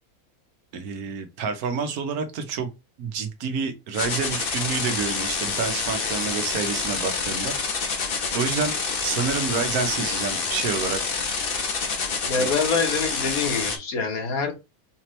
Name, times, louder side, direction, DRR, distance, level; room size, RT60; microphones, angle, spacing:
voice 1, 0.7-2.7 3.0-7.5 8.0-11.0 12.3-12.5, right 5 dB, 75° right, 8 dB, 1.2 m, -29 dB
sound 1, 3.9-13.8, left 5 dB, 45° left, 0.8 m, -27 dB
voice 2, 12.3-14.5, left 4 dB, 70° left, 3 dB, 1.5 m, -25 dB
4.1 x 2.9 x 3.0 m, 0.25 s
omnidirectional pair, 1.6 m